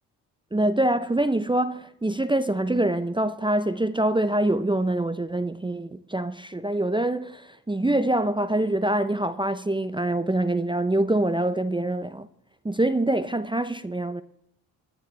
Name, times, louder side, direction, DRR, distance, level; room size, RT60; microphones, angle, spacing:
voice 1, 0.5-12.3 12.6-14.2, right 1 dB, 10° right, 0.7 m, -25 dB
24.0 x 9.1 x 3.4 m
hypercardioid pair, 45°, 48 cm